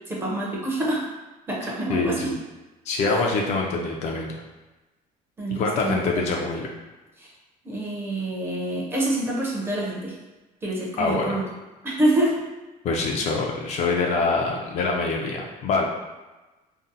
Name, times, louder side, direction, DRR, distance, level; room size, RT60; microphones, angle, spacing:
voice 1, 0.1-1.0 1.5-2.3 3.0-3.1 5.4-6.0 7.2-7.3 7.6-10.1 10.6-11.4 11.8-12.4, right 1 dB, 15° right, -4 dB, 0.5 m, -26 dB
voice 2, 1.9-2.4 2.9-4.4 5.5-6.7 11.0-11.4 12.8-15.8, left 3 dB, 45° left, 0 dB, 0.4 m, -25 dB
2.6 x 2.0 x 3.8 m, 1.1 s
cardioid pair, 165°, 16 cm